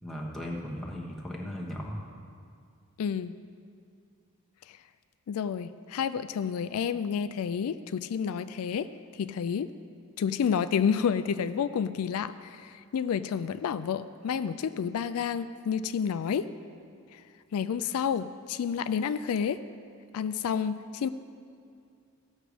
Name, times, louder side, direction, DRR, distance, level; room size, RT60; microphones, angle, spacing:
voice 1, 0.0-2.0, equal, ahead, -3 dB, 1.1 m, -37 dB
voice 2, 3.0-3.4 4.7-4.8 5.3-8.9 9.2-9.7 10.2-16.5 17.1-17.2 17.5-19.6 20.1-21.1, left 7 dB, 85° left, 12 dB, 0.3 m, -30 dB
16.0 x 6.4 x 5.0 m, 2.4 s
head